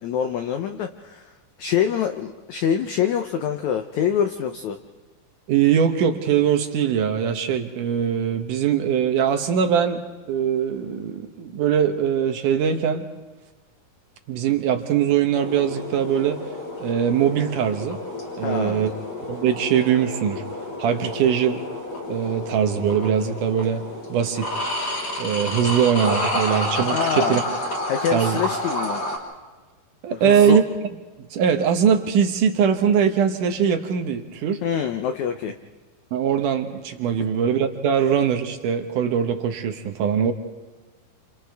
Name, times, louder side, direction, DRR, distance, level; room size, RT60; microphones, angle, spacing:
voice 1, 0.0-1.3 1.6-4.8 18.4-18.9 26.9-27.4 27.9-29.0 30.2-30.6 34.6-35.5, left 8 dB, 85° left, 7 dB, 1.6 m, -25 dB
voice 2, 5.5-13.1 14.3-16.4 16.8-18.0 18.4-18.9 19.3-20.4 20.8-21.6 22.1-23.8 24.1-24.5 25.2-27.4 28.1-28.4 30.0-30.6 31.3-34.6 36.1-40.3, right 8 dB, 70° right, 6 dB, 2.2 m, -21 dB
sound 1, 15.4-29.2, left 1 dB, 45° left, 4.4 m, -30 dB
29.5 x 27.5 x 3.5 m, 1.3 s
omnidirectional pair, 4.3 m